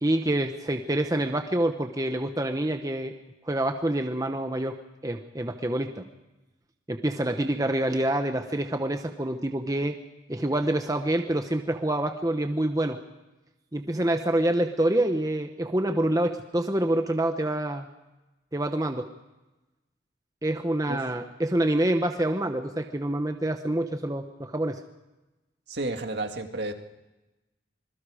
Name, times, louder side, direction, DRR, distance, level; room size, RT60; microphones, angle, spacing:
voice 1, 0.0-3.1 3.4-4.7 5.0-6.0 6.9-10.0 10.3-13.0 13.7-17.9 18.5-19.1 20.4-24.8, right 1 dB, 20° right, 5 dB, 1.0 m, -26 dB
voice 2, 25.7-26.7, right 2 dB, 60° right, 5 dB, 2.0 m, -31 dB
26.0 x 21.5 x 5.0 m, 1.1 s
head